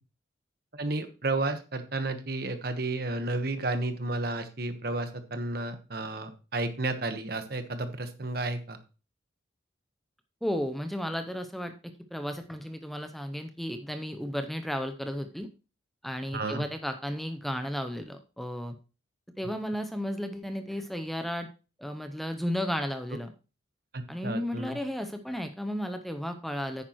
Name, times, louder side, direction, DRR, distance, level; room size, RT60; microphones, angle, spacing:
voice 1, 0.7-8.8 16.3-16.6 23.9-24.8, right 2 dB, 55° right, 8 dB, 1.2 m, -32 dB
voice 2, 10.4-15.5 16.0-18.8 19.4-21.5 21.8-23.3 24.1-26.8, equal, ahead, 7 dB, 0.6 m, -34 dB
10.5 x 9.0 x 3.0 m, 0.33 s
head